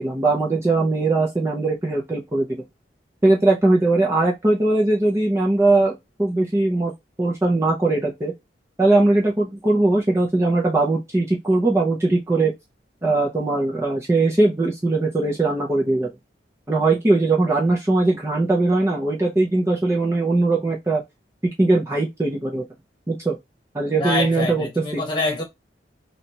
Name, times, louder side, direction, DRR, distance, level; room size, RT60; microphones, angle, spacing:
voice 1, 0.0-2.6 3.2-6.9 7.2-8.3 8.8-12.5 13.0-16.1 16.7-21.0 21.6-22.6 23.1-23.3 23.7-25.0, right 2 dB, 15° right, 0.6 m, -20 dB
voice 2, 24.0-25.4, left 2 dB, 25° left, 1.4 m, -25 dB
3.2 x 2.8 x 2.8 m
head